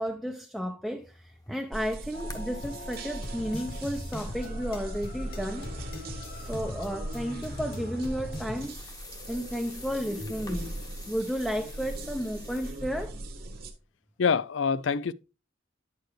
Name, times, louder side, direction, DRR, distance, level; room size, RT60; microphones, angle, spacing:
voice 1, 0.0-5.7 6.4-8.8 9.3-10.7 11.1-13.1, equal, ahead, 0.6 m, -33 dB
sound 1, 1.0-12.7, left 4 dB, 20° left, 1.0 m, -51 dB
sound 2, 1.7-13.7, right 1 dB, 50° right, 1.3 m, -40 dB
sound 3, 2.1-8.7, left 1 dB, 55° left, 1.6 m, -40 dB
voice 2, 14.2-15.1, left 5 dB, 80° left, 0.5 m, -25 dB
9.1 x 6.8 x 3.1 m
head